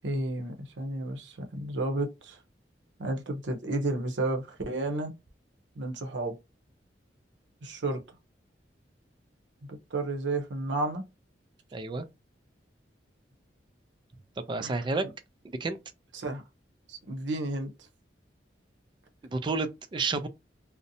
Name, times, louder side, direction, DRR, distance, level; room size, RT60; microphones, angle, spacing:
voice 1, 0.0-2.4 3.0-5.1 5.8-6.4 7.6-8.0 9.7-11.1 14.6-15.1 16.1-16.4 16.9-17.9, right 2 dB, 85° right, 0.6 m, -32 dB
voice 2, 11.7-12.1 14.4-15.1 15.4-15.8 19.2-20.3, right 3 dB, 25° right, 0.3 m, -30 dB
2.6 x 2.0 x 2.6 m
head